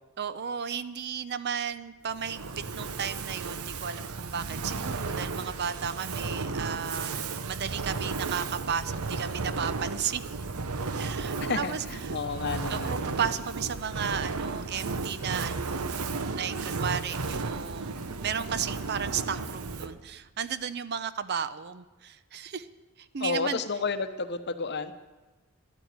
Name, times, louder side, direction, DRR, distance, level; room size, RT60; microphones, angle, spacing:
voice 1, 0.2-10.2 11.0-12.2 12.7-15.9 16.3-22.7 23.0-23.6, right 7 dB, 50° right, 14 dB, 0.6 m, -34 dB
Fire, 2.1-20.1, right 4 dB, 85° right, 0.8 m, -34 dB
voice 2, 11.4-13.0 23.2-24.9, left 4 dB, 50° left, 10 dB, 0.9 m, -31 dB
11.5 x 9.1 x 9.4 m, 1.2 s
head